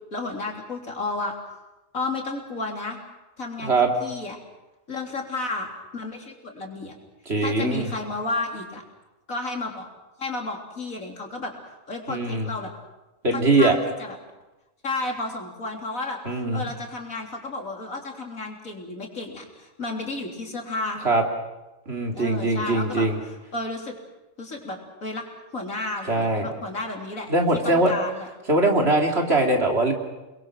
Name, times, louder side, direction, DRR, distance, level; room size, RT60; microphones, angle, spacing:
voice 1, 0.1-1.3 1.9-3.0 3.4-3.7 4.0-4.4 4.9-5.7 5.9-6.9 7.4-8.8 9.3-9.9 10.2-11.5 11.9-12.7 13.3-14.2 14.8-16.2 16.5-21.1 22.1-23.9 24.4-25.2 25.5-27.3 27.6-28.3, left 2 dB, 90° left, 1 dB, 4.0 m, -32 dB
voice 2, 7.3-7.9 12.1-12.5 13.2-13.8 16.3-16.7 21.0-21.2 21.9-23.2 26.1-26.5 27.3-27.9 28.5-29.9, right 2 dB, 50° right, 2 dB, 3.4 m, -21 dB
29.5 x 21.5 x 6.3 m, 1.0 s
omnidirectional pair, 1.4 m